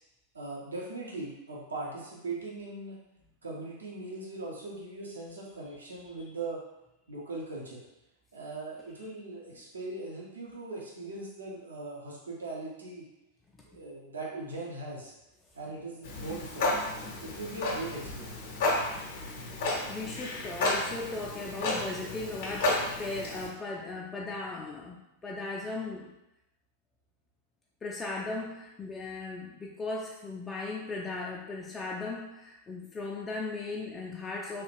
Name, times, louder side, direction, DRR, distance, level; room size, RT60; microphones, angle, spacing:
voice 1, 0.3-3.0 3.4-6.6 7.1-7.8 8.3-13.1 13.7-15.1 15.6-16.7 17.2-18.5, right 2 dB, 75° right, -4 dB, 0.8 m, -40 dB
Clock, 16.0-23.5, left 2 dB, 50° left, 0.7 m, -32 dB
voice 2, 19.9-26.1 27.8-34.6, left 3 dB, 20° left, -2 dB, 0.4 m, -37 dB
3.2 x 2.3 x 3.3 m, 0.91 s
figure-of-eight pair, 90°, 0 cm